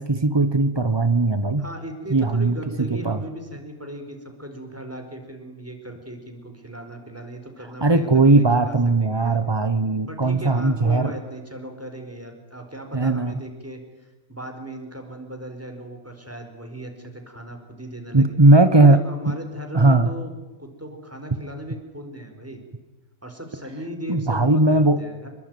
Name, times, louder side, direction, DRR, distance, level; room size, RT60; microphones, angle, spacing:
voice 1, 0.0-1.6 2.1-3.2 7.8-11.1 12.9-13.4 18.1-19.0 19.2-19.3 19.7-20.1 24.1-25.0, right 2 dB, 40° right, 11 dB, 0.3 m, -18 dB
voice 2, 1.6-8.7 9.0-9.4 10.1-18.3 18.7-20.3 20.6-22.6 23.2-25.3, right 1 dB, 5° right, 5 dB, 4.7 m, -37 dB
27.5 x 22.0 x 9.4 m, 1.1 s
omnidirectional pair, 2.3 m